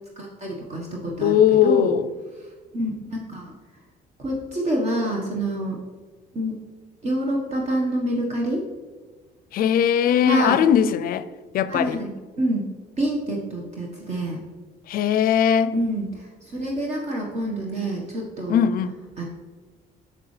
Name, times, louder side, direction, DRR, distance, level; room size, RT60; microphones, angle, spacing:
voice 1, 0.2-1.3 1.6-1.9 2.7-3.5 4.2-5.8 6.3-6.6 7.0-8.6 10.2-10.6 11.7-12.7 13.0-14.4 15.7-18.6 19.2-19.3, right 1 dB, 40° right, 1.4 m, -27 dB
voice 2, 1.2-2.1 9.5-11.3 11.5-12.0 14.9-15.7 18.5-19.0, left 9 dB, 60° left, 0.5 m, -19 dB
7.0 x 7.0 x 3.3 m
cardioid pair, 110°, 17 cm